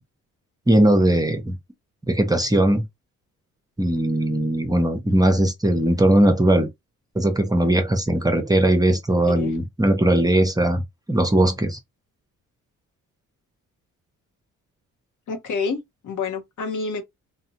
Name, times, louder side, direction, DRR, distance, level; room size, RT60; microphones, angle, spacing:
voice 1, 0.7-1.6 2.1-2.9 3.8-6.7 7.2-11.8, right 1 dB, 10° right, 0.6 m, -19 dB
voice 2, 15.3-17.0, left 4 dB, 65° left, 0.8 m, -28 dB
2.6 x 2.2 x 2.6 m
cardioid pair, 75°, 33 cm